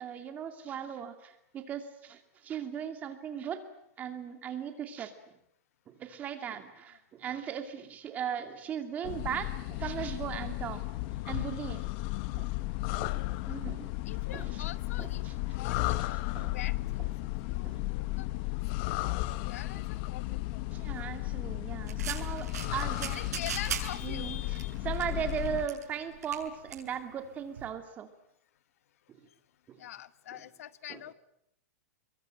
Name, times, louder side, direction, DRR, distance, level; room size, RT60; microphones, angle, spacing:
voice 1, 0.0-3.6 4.0-5.1 5.9-11.9 12.4-12.5 13.0-13.9 14.3-14.7 15.0-15.3 16.3-16.6 17.2-17.3 17.6-17.8 18.3-18.5 20.7-23.2 24.0-24.6 24.8-28.1 29.7-29.8 30.3-30.4 30.9-31.0, right 8 dB, 20° right, 7 dB, 2.5 m, -38 dB
sound 1, 9.0-25.7, left 19 dB, 35° left, 1.0 m, -34 dB
voice 2, 14.1-16.0 16.5-17.1 17.5-20.6 23.1-24.7 29.8-31.1, left 12 dB, 65° left, 16 dB, 1.0 m, -44 dB
sound 2, 21.9-27.7, right 8 dB, 85° right, 7.1 m, -41 dB
27.0 x 22.5 x 9.0 m, 0.76 s
supercardioid pair, 170°, 9 cm